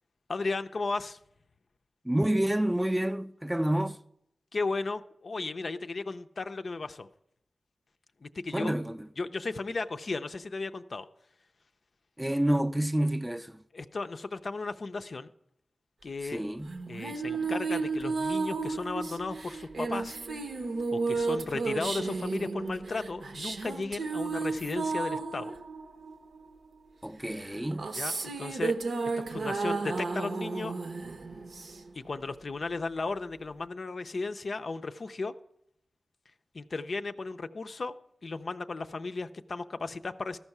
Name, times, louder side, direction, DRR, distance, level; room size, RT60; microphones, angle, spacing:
voice 1, 0.3-1.2 4.5-7.1 8.2-8.7 9.2-11.1 13.7-15.3 16.0-16.5 16.9-20.2 20.9-25.5 28.0-28.7 29.2-30.8 31.9-35.3 36.5-37.9 38.2-40.4, left 3 dB, 60° left, 0.4 m, -35 dB
voice 2, 2.0-4.0 8.5-9.0 12.2-13.5 16.3-16.7 27.0-27.9, right 1 dB, 10° right, 0.4 m, -28 dB
sound 1, 16.6-26.6 27.4-32.1, right 4 dB, 80° right, 0.7 m, -33 dB
13.5 x 5.5 x 5.8 m
cardioid pair, 60°, 0 cm